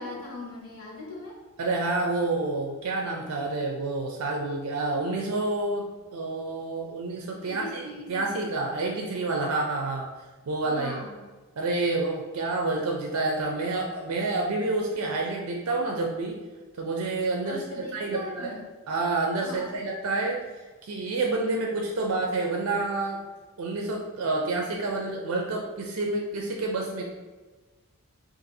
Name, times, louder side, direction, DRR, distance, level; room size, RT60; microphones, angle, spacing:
voice 1, 0.0-1.4 7.4-8.4 10.7-11.2 17.4-18.6 19.4-19.8, left 1 dB, 85° left, -2 dB, 1.0 m, -39 dB
voice 2, 1.6-10.1 10.5-11.0 11.6-16.4 16.8-18.5 18.9-20.4 20.8-23.2 23.6-27.0, right 2 dB, 80° right, 0 dB, 0.4 m, -28 dB
2.6 x 2.5 x 4.0 m, 1.3 s
head